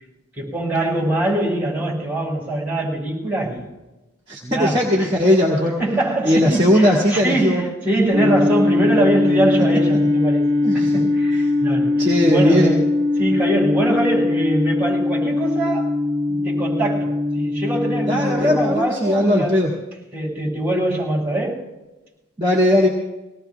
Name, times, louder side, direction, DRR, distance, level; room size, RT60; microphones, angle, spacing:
voice 1, 0.4-3.7 4.4-5.1 5.8-10.5 10.7-12.0 12.3-12.9 13.2-16.0 16.3-19.6 20.1-21.7, right 1 dB, 10° right, 5.3 m, -23 dB
voice 2, 4.3-5.8 6.2-7.6 10.6-10.9 12.0-12.7 18.1-19.7 22.4-22.9, left 1 dB, 25° right, 2.0 m, -18 dB
sound 1, 8.1-18.7, left 2 dB, 50° right, 1.1 m, -20 dB
24.5 x 18.0 x 2.3 m
head